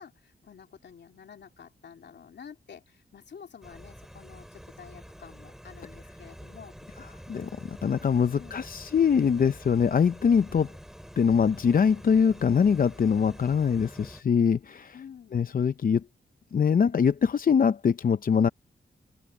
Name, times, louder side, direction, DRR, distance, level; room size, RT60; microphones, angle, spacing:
voice 1, 0.0-6.8 8.3-8.6 14.9-15.4, left 7 dB, 70° left, 2.9 m, -49 dB
sound 1, 3.6-14.2, equal, ahead, 7.3 m, -47 dB
voice 2, 7.3-10.7 11.2-15.0 15.3-16.1 16.5-18.5, left 6 dB, 50° left, 0.6 m, -23 dB
open air
cardioid pair, 70°, 18 cm